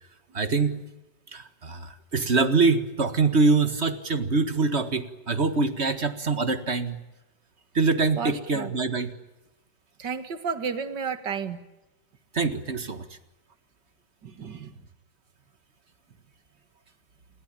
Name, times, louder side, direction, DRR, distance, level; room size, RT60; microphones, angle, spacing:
voice 1, 0.3-0.8 1.3-7.0 7.7-9.1 12.3-13.1, right 3 dB, 40° right, 11 dB, 1.9 m, -24 dB
voice 2, 8.2-8.7 10.0-11.6 14.2-14.7, right 6 dB, 75° right, 11 dB, 2.6 m, -32 dB
29.0 x 22.0 x 9.0 m, 1.0 s
omnidirectional pair, 1.9 m